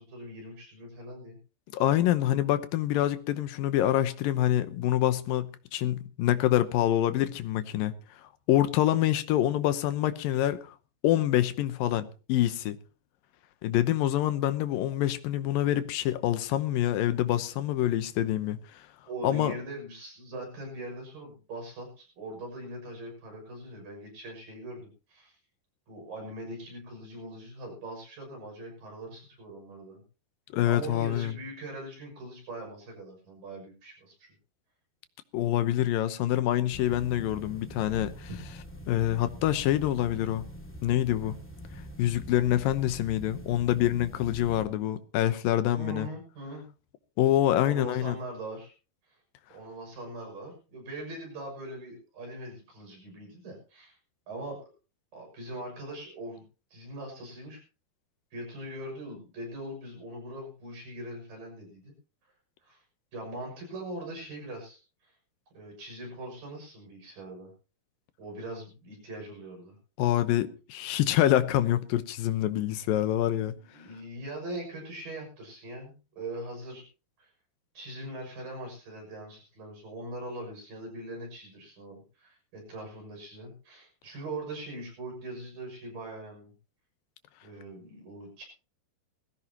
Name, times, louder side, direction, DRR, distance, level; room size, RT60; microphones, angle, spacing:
voice 1, 0.0-1.4 19.1-25.4 25.9-30.0 30.6-34.3 38.3-38.4 45.7-46.6 47.6-48.7 49.1-49.2 49.5-54.0 54.3-54.6 55.1-56.4 56.7-57.6 58.3-61.9 62.6-62.8 63.1-65.1 65.5-67.5 68.2-69.8 73.7-76.8 77.2-77.3 77.7-86.5 87.4-88.4, right 1 dB, 60° right, 7.9 m, -41 dB
voice 2, 1.7-7.9 8.5-10.8 11.0-12.8 13.6-18.8 19.2-19.5 30.5-31.3 35.3-38.3 38.9-40.4 40.8-41.4 42.0-46.1 47.2-48.2 70.0-73.5, left 13 dB, 75° left, 2.4 m, -26 dB
sound 1, 36.7-44.6, equal, 10° left, 0.6 m, -44 dB
20.0 x 15.5 x 2.9 m
omnidirectional pair, 4.5 m